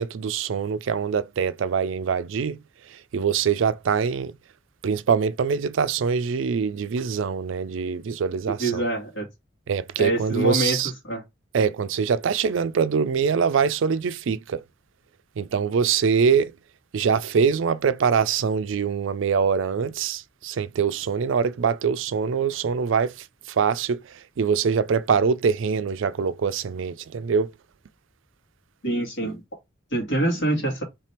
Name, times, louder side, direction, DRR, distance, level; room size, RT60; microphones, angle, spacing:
voice 1, 0.0-2.6 2.9-4.3 4.8-8.9 9.7-10.9 11.5-14.6 15.4-16.5 16.9-27.5, right 6 dB, 70° right, 0.4 m, -24 dB
voice 2, 8.6-9.3 10.0-10.8 11.0-11.2 28.8-29.4 29.9-30.8, right 1 dB, 70° left, 1.9 m, -25 dB
3.4 x 3.3 x 4.3 m
head